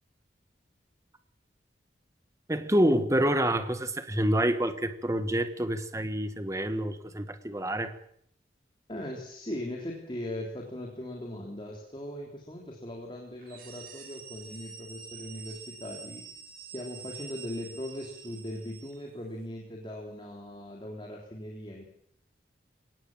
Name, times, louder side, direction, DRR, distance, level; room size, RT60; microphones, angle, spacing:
voice 1, 2.5-7.9, right 1 dB, 15° right, 10 dB, 1.6 m, -27 dB
voice 2, 8.9-16.2 16.7-21.8, left 1 dB, 25° left, 0 dB, 3.4 m, -39 dB
sound 1, 13.4-19.1, right 6 dB, 50° right, 5.9 m, -47 dB
23.5 x 19.0 x 7.4 m, 0.66 s
head